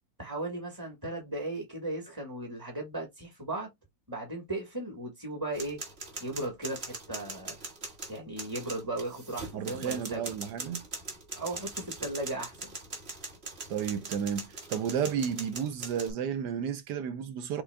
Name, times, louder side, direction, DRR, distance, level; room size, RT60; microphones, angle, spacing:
voice 1, 0.2-3.7 4.1-5.8 6.2-7.6 8.1-10.2 11.3-12.7, right 2 dB, 15° right, 1.2 m, -36 dB
sound 1, 5.5-16.1, right 3 dB, 40° right, 1.7 m, -41 dB
voice 2, 9.5-10.9 13.7-17.6, right 8 dB, 75° right, 1.2 m, -32 dB
6.0 x 3.7 x 2.2 m
omnidirectional pair, 1.9 m